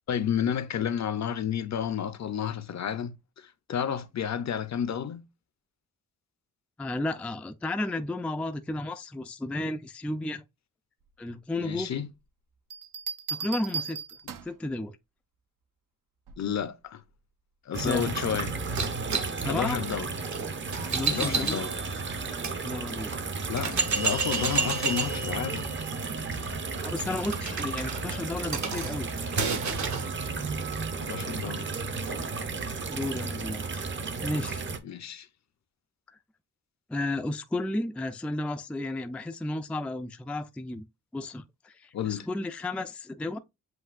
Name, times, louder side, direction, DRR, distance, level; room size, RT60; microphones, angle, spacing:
voice 1, 0.1-5.2 11.6-12.1 16.4-17.0 17.7-18.6 19.4-20.1 21.1-21.8 23.5-25.7 31.0-31.7 34.8-35.3 41.9-42.3, left 8 dB, 55° left, 0.6 m, -31 dB
voice 2, 6.8-10.4 11.2-11.9 13.3-14.0 14.4-15.0 17.8-18.1 19.4-19.8 20.8-21.6 22.6-23.1 26.8-29.1 32.9-33.9 34.2-34.6 36.9-40.8 41.1-43.4, left 2 dB, 5° left, 0.3 m, -33 dB
sound 1, 12.7-14.7 16.3-16.6, right 6 dB, 80° right, 0.7 m, -36 dB
sound 2, 17.7-34.8, right 4 dB, 35° right, 0.6 m, -34 dB
sound 3, 18.8-22.6 23.1-23.2 23.6-30.1, right 4 dB, 60° right, 1.0 m, -32 dB
7.8 x 2.6 x 2.4 m
wide cardioid pair, 135°, 32 cm